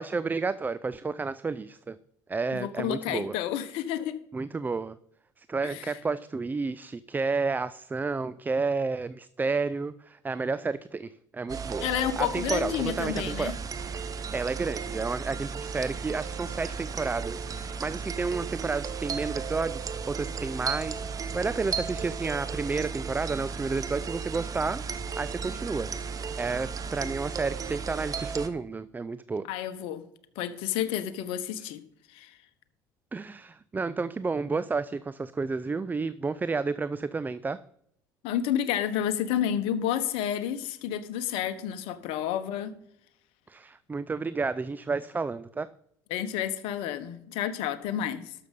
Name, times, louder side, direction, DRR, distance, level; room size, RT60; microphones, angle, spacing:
voice 1, 0.0-2.0 2.3-3.4 4.3-5.0 5.4-11.9 12.2-13.5 14.0-24.8 25.2-29.5 33.1-37.6 43.5-45.7, right 4 dB, 20° right, 0.4 m, -31 dB
voice 2, 2.5-4.2 5.6-5.9 11.8-13.5 29.5-30.0 30.4-31.8 32.1-32.4 38.2-42.7 46.1-48.3, left 10 dB, 70° left, 1.1 m, -30 dB
sound 1, 11.5-28.5, right 5 dB, 35° right, 1.2 m, -35 dB
12.5 x 6.8 x 5.3 m
hypercardioid pair, 70°, 10 cm